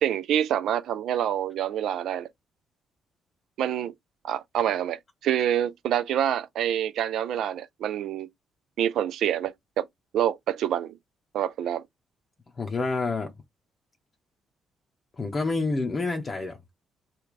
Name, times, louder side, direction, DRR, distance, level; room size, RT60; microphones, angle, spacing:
voice 1, 0.0-2.3 3.6-3.9 4.2-8.3 8.8-9.8 10.1-11.0 11.3-11.8, right 10 dB, 60° right, 0.4 m, -27 dB
voice 2, 12.6-13.3 15.2-16.7, left 3 dB, 35° left, 0.7 m, -28 dB
3.3 x 2.3 x 3.8 m
figure-of-eight pair, 40°, 0 cm